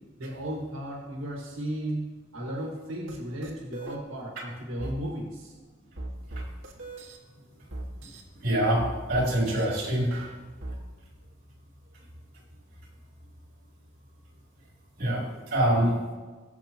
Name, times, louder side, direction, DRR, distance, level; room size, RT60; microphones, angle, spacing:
voice 1, 0.2-2.1 2.3-5.5, right 1 dB, 85° right, -2 dB, 1.9 m, -35 dB
sound 1, 3.1-3.2 3.4-4.0 4.8-5.0 6.0-7.2 7.7-8.2 8.8-9.6 10.1-10.8, right 2 dB, 70° right, 1.9 m, -38 dB
voice 2, 8.4-8.8 9.1-10.1 15.0-15.2 15.5-15.9, right 1 dB, 50° right, -3 dB, 3.7 m, -24 dB
21.0 x 7.1 x 3.0 m, 1.4 s
head